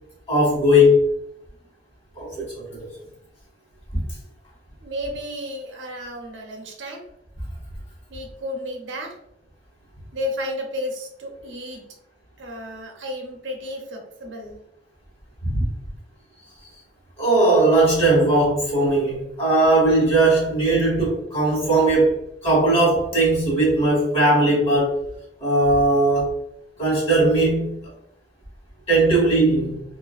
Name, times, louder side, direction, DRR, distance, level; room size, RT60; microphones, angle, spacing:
voice 1, 0.3-1.0 2.1-2.6 15.4-15.6 17.2-22.2 22.4-24.9 25.4-26.3 26.8-27.8 28.9-29.8, right 1 dB, 35° left, -4 dB, 1.5 m, -18 dB
voice 2, 4.8-7.0 8.1-9.2 10.1-11.8 12.4-14.6, left 1 dB, 80° right, 2 dB, 0.6 m, -32 dB
2.7 x 2.5 x 2.3 m, 0.75 s
head